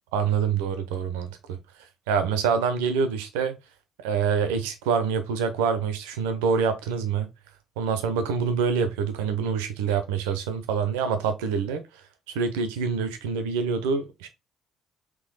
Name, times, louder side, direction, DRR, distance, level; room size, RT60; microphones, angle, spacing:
voice 1, 0.1-1.6 2.1-3.6 4.0-7.3 7.8-11.8 12.3-14.3, right 6 dB, 80° right, 0.7 m, -26 dB
3.8 x 2.9 x 4.0 m
hypercardioid pair, 50°, 0 cm